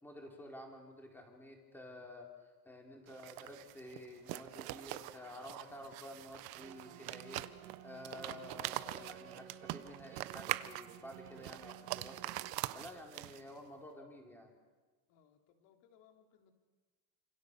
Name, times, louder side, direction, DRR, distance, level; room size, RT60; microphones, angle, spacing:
voice 1, 0.0-7.4 7.8-12.3 12.7-14.5, left 1 dB, 5° left, 1 dB, 4.0 m, -51 dB
sound 1, 3.1-13.6, right 17 dB, 45° right, 1.0 m, -43 dB
sound 2, 6.5-12.5, right 11 dB, 65° right, 2.9 m, -54 dB
voice 2, 15.1-16.5, left 8 dB, 55° left, 4 dB, 3.7 m, -66 dB
29.0 x 27.0 x 6.9 m, 1.3 s
cardioid pair, 165°, 50 cm